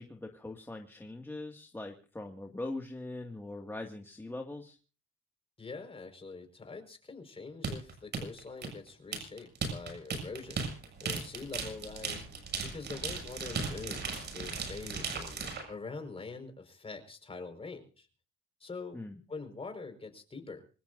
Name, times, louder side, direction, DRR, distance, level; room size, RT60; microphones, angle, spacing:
voice 1, 0.0-4.8 18.9-19.2, left 2 dB, 10° left, 2 dB, 2.2 m, -41 dB
voice 2, 5.6-10.6 11.0-12.3 12.6-15.4 15.7-18.1 18.6-19.0 19.3-20.6, left 4 dB, 30° left, 6 dB, 5.2 m, -44 dB
sound 1, 7.6-15.6, right 5 dB, 60° right, 7.5 m, -36 dB
26.0 x 16.5 x 2.7 m, 0.38 s
cardioid pair, 90°, 20 cm